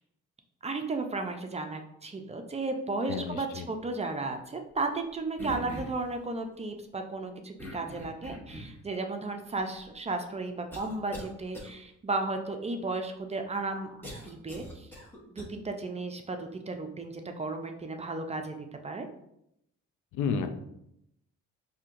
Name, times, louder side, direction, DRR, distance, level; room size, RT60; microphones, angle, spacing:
voice 1, 0.6-14.0 14.2-14.9 15.3-19.1, right 3 dB, 20° right, 5 dB, 0.4 m, -34 dB
voice 2, 3.1-3.7 20.1-20.5, left 6 dB, 75° left, 7 dB, 0.5 m, -31 dB
sound 1, 5.4-6.1 7.6-8.8 9.6-9.7 10.7-11.3 11.5-11.7 14.0-15.4, equal, 5° left, 0.9 m, -42 dB
4.3 x 2.7 x 2.5 m, 0.78 s
cardioid pair, 90°, 30 cm